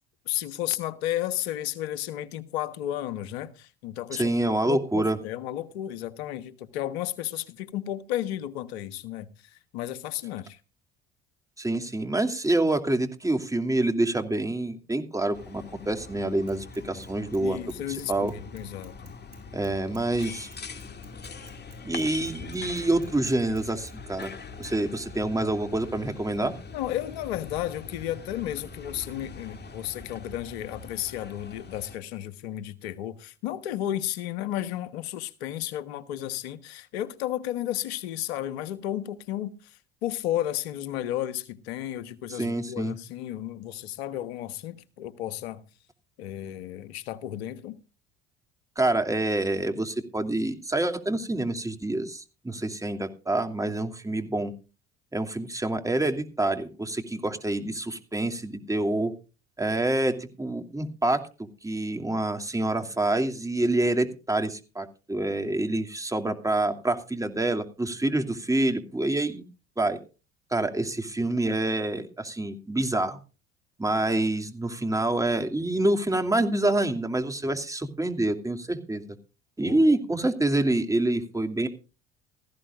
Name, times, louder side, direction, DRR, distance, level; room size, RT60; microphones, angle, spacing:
voice 1, 0.3-4.3 4.7-10.6 17.4-19.1 26.7-45.6 46.2-47.8 79.6-79.8, left 12 dB, 80° left, 1.3 m, -33 dB
voice 2, 4.1-5.2 11.6-17.6 18.1-18.3 19.5-20.5 21.8-24.3 24.6-26.5 42.3-43.0 48.8-54.5 55.1-59.1 59.6-69.4 69.8-70.0 70.5-73.2 73.8-79.0 79.6-81.7, right 2 dB, 10° right, 2.8 m, -27 dB
sound 1, 15.3-32.0, left 4 dB, 35° left, 2.3 m, -43 dB
Bicycle / Mechanisms, 16.5-17.4 17.7-24.0 24.2-24.3 24.6-24.7, right 6 dB, 60° right, 7.3 m, -56 dB
17.5 x 15.0 x 2.5 m
hypercardioid pair, 65°, 31 cm